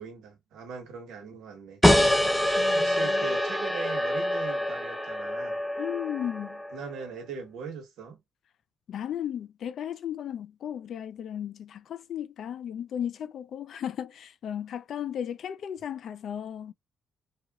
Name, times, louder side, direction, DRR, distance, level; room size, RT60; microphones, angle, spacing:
voice 1, 0.0-1.8 2.7-5.6 6.7-8.2, right 5 dB, 80° right, 1.0 m, -40 dB
sound 1, 1.8-7.0, left 1 dB, ahead, 0.5 m, -25 dB
voice 2, 2.6-3.3 5.8-6.6 8.9-16.7, left 9 dB, 65° left, 0.4 m, -35 dB
2.8 x 2.4 x 2.2 m
cardioid pair, 80°, 0 cm